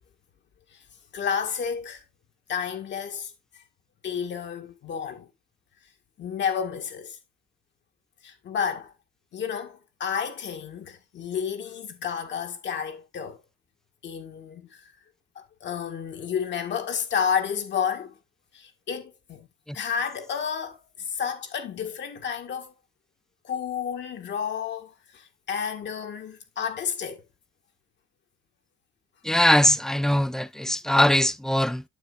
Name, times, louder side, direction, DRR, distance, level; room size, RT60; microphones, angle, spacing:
voice 1, 1.1-2.0 2.5-3.3 4.0-5.3 6.2-7.2 8.2-8.9 9.3-13.4 14.0-14.9 15.4-18.2 18.5-19.5 19.7-22.7 23.4-27.2, left 7 dB, 65° left, 1.8 m, -31 dB
voice 2, 29.2-31.8, left 1 dB, 5° left, 0.5 m, -21 dB
9.2 x 7.3 x 2.5 m
cardioid pair, 90°, 20 cm